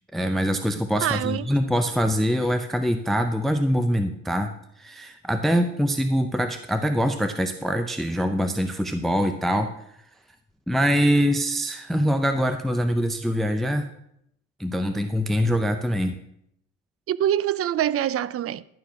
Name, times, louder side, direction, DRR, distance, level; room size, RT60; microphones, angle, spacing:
voice 1, 0.1-4.5 4.8-9.7 10.7-13.9 14.6-16.1, equal, ahead, 0.5 m, -24 dB
voice 2, 1.0-1.5 17.1-18.6, right 11 dB, 50° right, 0.4 m, -24 dB
11.0 x 4.7 x 5.8 m
cardioid pair, 90°, 30 cm